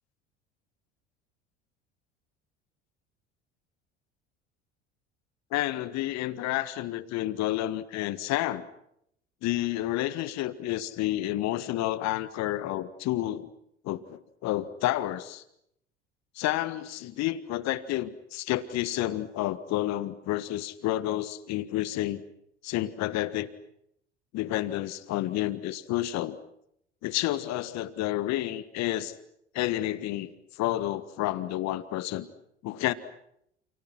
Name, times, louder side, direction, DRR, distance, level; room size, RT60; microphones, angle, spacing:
voice 1, 5.5-8.7 9.4-13.5 13.8-15.4 16.3-22.2 22.6-23.5 24.3-26.4 27.0-29.1 29.5-30.3 30.6-32.3 32.6-32.9, left 15 dB, 50° left, 15 dB, 1.6 m, -30 dB
29.5 x 29.0 x 6.1 m, 0.75 s
figure-of-eight pair, 65°, 34 cm